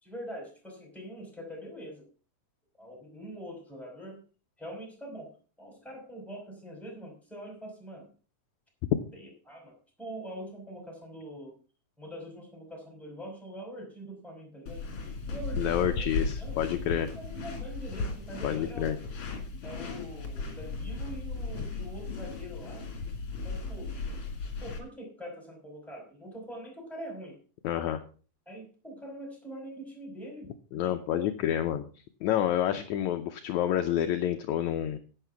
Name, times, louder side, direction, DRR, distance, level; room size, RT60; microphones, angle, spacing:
voice 1, 0.0-2.1 2.8-4.2 4.6-5.3 5.6-8.1 9.1-11.5 12.0-14.8 15.3-16.1 16.4-16.6 16.9-19.0 19.6-22.9 23.4-24.0 24.6-27.4 28.5-31.6, equal, ahead, 2 dB, 5.1 m, -44 dB
sound 1, 14.7-24.8, left 3 dB, 45° left, 3.3 m, -36 dB
voice 2, 15.6-17.1 18.4-19.0 27.6-28.0 30.7-31.9 32.2-35.0, left 11 dB, 75° left, 8 dB, 1.9 m, -28 dB
11.0 x 9.2 x 5.7 m, 0.38 s
omnidirectional pair, 3.9 m